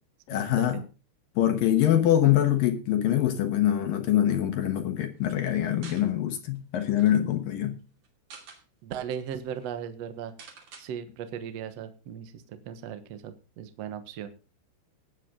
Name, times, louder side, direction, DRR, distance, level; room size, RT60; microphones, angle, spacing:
voice 1, 0.3-0.8 1.4-7.8, left 11 dB, 65° left, 2.5 m, -24 dB
sound 1, 5.8-6.1 6.5-6.6 6.9-7.1 8.0-8.6 9.2-9.3 9.5-9.7 10.4-10.9, right 5 dB, 50° right, 3.5 m, -47 dB
voice 2, 8.8-10.3 10.8-14.3, right 8 dB, 75° right, 1.4 m, -37 dB
18.5 x 8.4 x 3.8 m
omnidirectional pair, 5.1 m